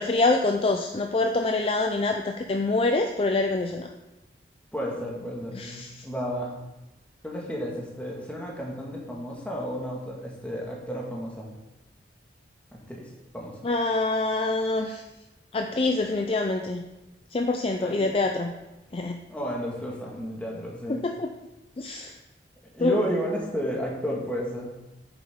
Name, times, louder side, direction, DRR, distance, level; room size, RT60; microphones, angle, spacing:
voice 1, 0.0-3.9 5.5-6.0 13.6-15.0 15.5-16.8 17.3-18.5 18.9-19.2 20.9-21.3 21.8-22.1 22.8-23.0, left 2 dB, 30° left, 5 dB, 0.4 m, -25 dB
voice 2, 4.7-6.6 7.2-11.5 12.7-13.7 17.8-18.0 19.3-21.0 22.7-24.9, equal, 10° left, -2 dB, 1.7 m, -32 dB
8.9 x 7.1 x 3.7 m, 0.99 s
head